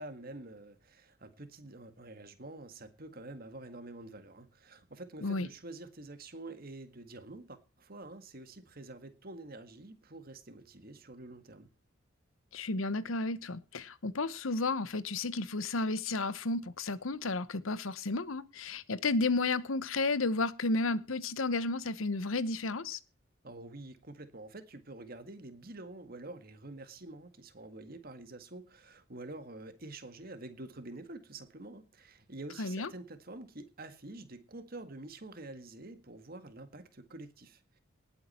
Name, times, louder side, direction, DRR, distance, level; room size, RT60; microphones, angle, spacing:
voice 1, 0.0-11.7 23.4-37.8, right 2 dB, 45° right, 1.8 m, -47 dB
voice 2, 12.5-23.0 32.6-32.9, left 3 dB, 85° left, 1.0 m, -32 dB
19.0 x 8.9 x 4.4 m
head